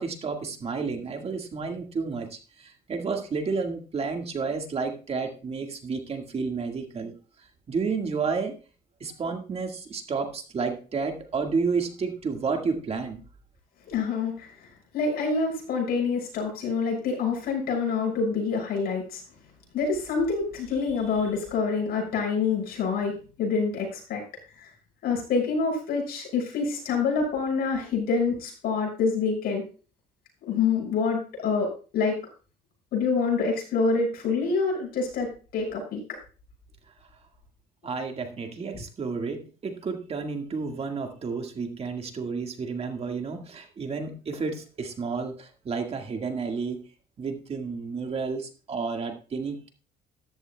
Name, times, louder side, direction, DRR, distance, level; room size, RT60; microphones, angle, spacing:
voice 1, 0.0-7.1 7.7-8.6 9.0-13.2 37.8-46.8 47.2-49.7, right 4 dB, 35° right, 4 dB, 1.8 m, -31 dB
voice 2, 13.9-14.5 14.9-19.2 19.7-24.2 24.6-24.7 25.0-29.6 30.5-32.2 32.9-36.2, left 4 dB, 65° left, 0 dB, 6.6 m, -26 dB
14.0 x 11.5 x 2.3 m, 0.36 s
cardioid pair, 110°, 17 cm